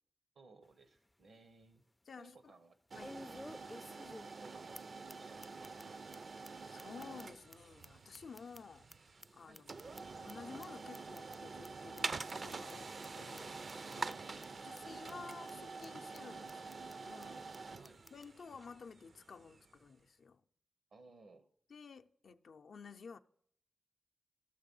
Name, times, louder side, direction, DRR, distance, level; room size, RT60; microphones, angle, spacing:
voice 1, 0.3-1.8 2.2-3.5 4.4-6.0 9.5-9.6 13.9-14.2 17.7-18.0 20.9-21.5, right 3 dB, 80° right, 1.0 m, -61 dB
sound 1, 0.6-0.7 1.2-1.3 3.0-4.5 4.7-4.8 5.1-5.2 5.4-5.8 6.1-6.2 6.4-6.5 6.8-8.9 9.2-10.3 10.6-10.7 10.9-11.4 11.6-11.7 12.0-12.1 12.3-12.7 13.0-13.1 13.4-13.5 13.7-14.1 14.4-14.5 14.8-14.9 15.1-15.5 15.8-15.9 16.1-16.2 16.5-16.9 17.2-17.3 17.5-17.6 17.8-18.3, left 1 dB, 15° left, 0.3 m, -53 dB
voice 2, 2.1-2.5 3.0-3.2 6.6-8.9 9.3-14.1 14.5-17.7 18.1-20.4 21.7-23.2, left 5 dB, 80° left, 0.5 m, -53 dB
sound 2, 2.9-19.8, right 4 dB, 60° right, 0.5 m, -47 dB
13.5 x 6.5 x 5.4 m
cardioid pair, 60°, 0 cm